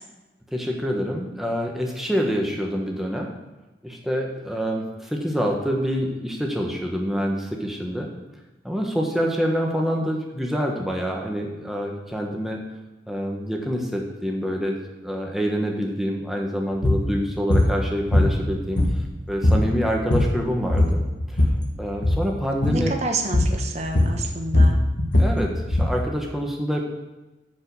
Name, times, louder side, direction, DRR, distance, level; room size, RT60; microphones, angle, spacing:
voice 1, 0.5-3.3 3.8-8.1 8.6-12.6 13.1-21.0 21.3-21.5 21.8-22.9 25.2-26.8, equal, ahead, 0 dB, 1.2 m, -26 dB
sound 1, 16.7-17.0 17.5-17.7 18.1-19.1 19.4-19.7 20.0-20.4 20.7-21.6 21.9-22.2 22.6-22.8 23.3-23.6 23.9-26.0, left 1 dB, 75° left, 1.7 m, -19 dB
voice 2, 22.7-24.8, right 2 dB, 35° right, 3 dB, 1.0 m, -29 dB
10.5 x 5.4 x 6.9 m, 1.1 s
head